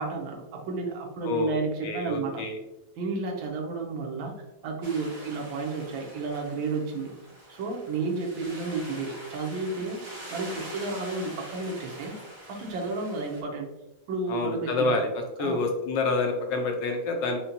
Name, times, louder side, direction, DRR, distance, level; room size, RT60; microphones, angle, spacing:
voice 1, 0.0-2.4 3.0-4.3 4.6-7.1 7.5-10.0 10.3-12.2 12.4-13.7 14.1-14.9 15.4-15.6, right 3 dB, 85° right, 1 dB, 1.5 m, -32 dB
voice 2, 1.2-2.5 14.3-17.4, left 3 dB, 75° left, 4 dB, 1.2 m, -28 dB
sound 1, 4.8-13.4, right 1 dB, 50° right, 1.5 m, -44 dB
5.1 x 2.1 x 2.8 m, 0.94 s
omnidirectional pair, 2.1 m